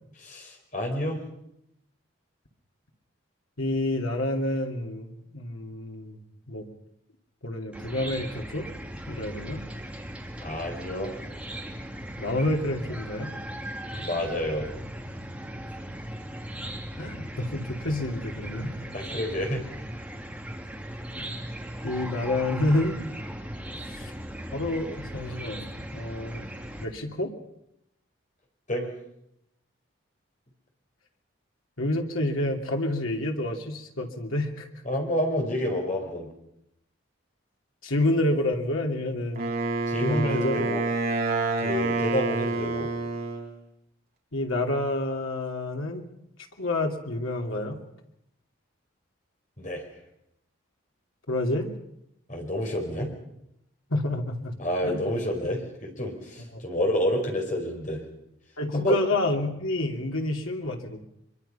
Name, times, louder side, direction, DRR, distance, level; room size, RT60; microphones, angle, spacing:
voice 1, 0.2-1.2 10.4-11.1 13.9-14.7 18.9-19.6 28.7-28.9 34.8-36.3 39.9-40.9 41.6-42.9 49.6-49.8 52.3-53.1 54.6-58.0 58.7-58.9, left 1 dB, 35° left, 1 dB, 5.0 m, -29 dB
voice 2, 3.6-6.2 6.5-6.7 7.4-8.7 9.1-9.6 12.2-13.3 17.0-18.7 21.1-21.5 21.8-23.0 23.8-24.1 24.5-25.6 25.9-26.4 26.8-27.3 31.8-34.7 37.8-39.4 40.0-40.6 44.3-46.1 46.6-47.8 51.3-51.7 53.9-54.5 54.8-55.0 56.5-56.6 58.6-61.1, left 1 dB, 85° left, 2 dB, 2.8 m, -28 dB
Chicken rooster / Cricket, 7.7-26.8, right 1 dB, 5° right, 2.3 m, -38 dB
Wind instrument woodwind instrument, 39.4-43.5, right 3 dB, 45° right, 3.6 m, -28 dB
24.0 x 23.5 x 5.7 m, 0.81 s
head